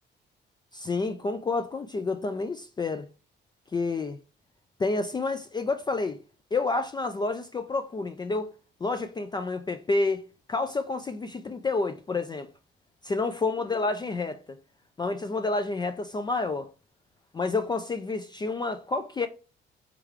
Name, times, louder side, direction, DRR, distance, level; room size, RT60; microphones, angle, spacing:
voice 1, 0.7-3.1 3.7-4.2 4.8-6.2 6.5-8.5 8.8-10.2 10.5-12.5 13.0-14.4 15.0-16.7 17.3-19.3, left 3 dB, 20° left, 0.3 m, -29 dB
3.6 x 3.3 x 3.2 m
cardioid pair, 90°, 20 cm